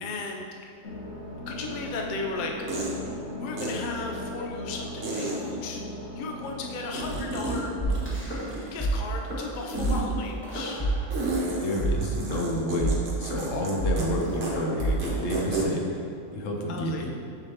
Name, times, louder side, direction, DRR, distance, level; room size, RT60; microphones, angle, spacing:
voice 1, 0.0-0.4 1.5-2.9 3.4-5.8 6.1-8.0 8.7-11.0 16.7-17.0, left 3 dB, 50° left, 0 dB, 0.7 m, -35 dB
sound 1, 0.8-8.1, left 1 dB, 90° left, 1.6 m, -39 dB
sound 2, 2.7-2.9 3.6-3.7 5.0-5.3 6.9-7.6 7.9-8.8 9.7-10.0 11.1-13.7 14.0-14.1 14.4-14.5 14.8-15.6, right 3 dB, 65° right, 1.3 m, -31 dB
sound 3, 7.8-8.9 9.2-9.4 9.8-9.9 10.4-11.4 11.8-15.8, equal, 10° left, 1.2 m, -29 dB
voice 2, 11.6-17.2, equal, 75° left, 0 dB, 1.1 m, -30 dB
6.4 x 6.2 x 2.9 m, 2.4 s
omnidirectional pair, 1.4 m